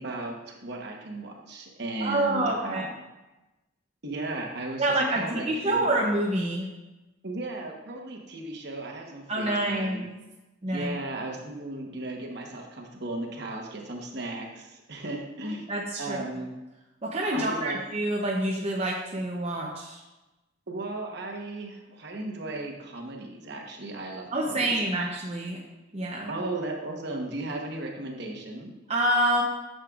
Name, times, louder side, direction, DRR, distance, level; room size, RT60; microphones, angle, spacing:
voice 1, 0.0-2.9 4.0-5.9 7.2-10.0 10.7-15.7 16.0-16.5 17.3-17.8 20.7-24.7 26.3-28.7, right 2 dB, 55° right, 0 dB, 1.1 m, -36 dB
voice 2, 2.0-2.9 4.8-6.7 9.3-10.2 10.6-10.9 15.4-16.2 17.0-20.0 24.3-25.6 25.9-26.3 28.9-29.4, right 1 dB, 30° right, -3 dB, 0.7 m, -27 dB
8.9 x 6.6 x 2.4 m, 1.0 s
head